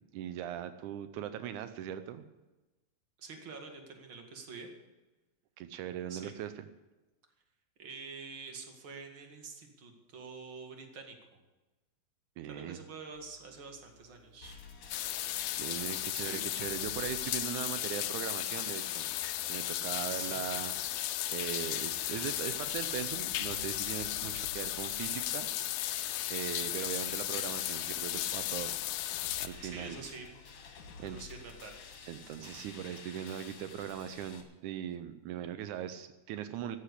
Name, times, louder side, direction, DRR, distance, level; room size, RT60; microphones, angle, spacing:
voice 1, 0.1-2.2 5.6-6.6 12.4-12.8 15.6-19.1 19.5-25.8 26.3-28.8 29.0-30.0 31.0-31.2 32.1-36.8, right 10 dB, 90° right, 10 dB, 1.7 m, -40 dB
voice 2, 3.2-4.7 6.1-6.3 7.8-11.4 12.5-14.6 16.1-16.4 20.1-20.4 22.7-22.8 29.6-30.3 31.0-31.7, right 4 dB, 40° right, 3 dB, 2.2 m, -47 dB
sound 1, 13.1-32.8, left 4 dB, 60° right, 3.0 m, -65 dB
sound 2, 14.4-34.4, left 5 dB, 60° left, 3.1 m, -50 dB
sound 3, 14.9-29.5, left 15 dB, 85° left, 2.5 m, -35 dB
14.5 x 10.0 x 8.3 m, 1.1 s
omnidirectional pair, 4.4 m